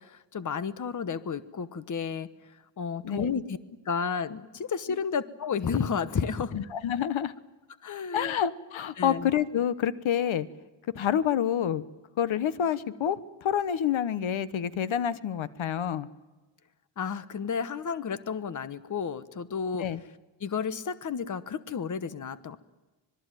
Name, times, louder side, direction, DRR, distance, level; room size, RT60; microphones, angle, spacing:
voice 1, 0.0-2.3 2.8-3.6 3.8-6.6 7.8-8.3 9.0-9.3 17.0-19.9 20.4-22.6, left 6 dB, 40° left, 14 dB, 1.1 m, -32 dB
voice 2, 6.5-7.3 8.1-10.5 10.9-11.8 12.2-16.1 19.8-20.0, left 9 dB, 80° left, 15 dB, 1.2 m, -28 dB
25.5 x 21.5 x 9.1 m, 1.2 s
wide cardioid pair, 160°, 46 cm